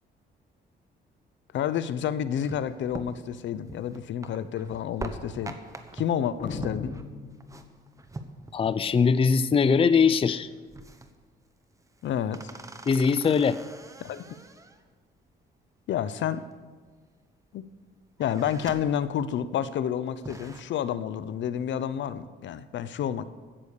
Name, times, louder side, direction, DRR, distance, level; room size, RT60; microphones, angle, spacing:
voice 1, 1.5-5.6 5.9-7.0 12.0-12.4 14.0-14.3 15.9-16.5 17.5-17.7 18.2-23.3, left 9 dB, 70° left, 15 dB, 0.7 m, -29 dB
sound 1, 2.4-9.0 9.3-9.4 9.7-10.1 10.4-11.3 11.7-14.9 16.0-16.9 17.4-17.8 18.1-19.0 19.4-19.5 20.0-20.6, right 2 dB, 15° right, 1.1 m, -43 dB
sound 2, 6.4-8.0, left 5 dB, 45° left, 1.6 m, -38 dB
voice 2, 8.5-10.5 12.9-13.6, left 5 dB, 30° left, 15 dB, 0.5 m, -21 dB
16.0 x 6.9 x 6.6 m, 1.4 s
cardioid pair, 90°, 20 cm